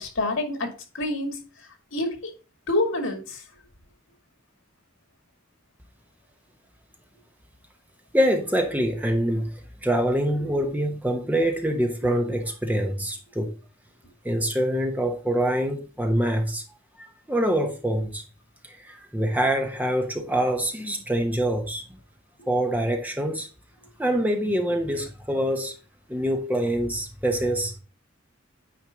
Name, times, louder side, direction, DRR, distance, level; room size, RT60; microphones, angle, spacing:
voice 1, 0.0-1.4 1.9-2.3 2.7-3.4 10.5-10.6, left 2 dB, 80° left, 2.0 m, -27 dB
voice 2, 8.1-9.5 9.8-13.5 14.2-16.6 17.3-18.2 18.8-21.8 22.5-23.5 24.0-25.7 26.1-27.7, right 1 dB, 10° right, 0.9 m, -25 dB
9.1 x 4.5 x 3.5 m
head